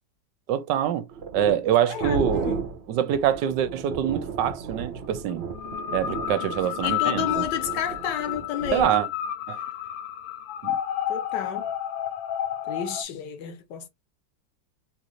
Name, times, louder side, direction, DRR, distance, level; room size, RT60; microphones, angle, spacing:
voice 1, 0.5-1.1 1.3-2.5 2.9-5.4 5.9-7.5 8.7-9.1 9.5-9.6 10.6-10.8, right 10 dB, 75° right, 1.1 m, -25 dB
sound 1, 1.1-9.0, right 5 dB, 55° right, 0.7 m, -34 dB
voice 2, 1.9-2.2 2.4-2.6 6.8-8.9 11.1-11.7 12.7-13.9, left 7 dB, 70° left, 1.3 m, -31 dB
sound 2, 5.5-13.0, left 11 dB, 90° left, 1.4 m, -31 dB
3.8 x 2.6 x 2.9 m
omnidirectional pair, 2.0 m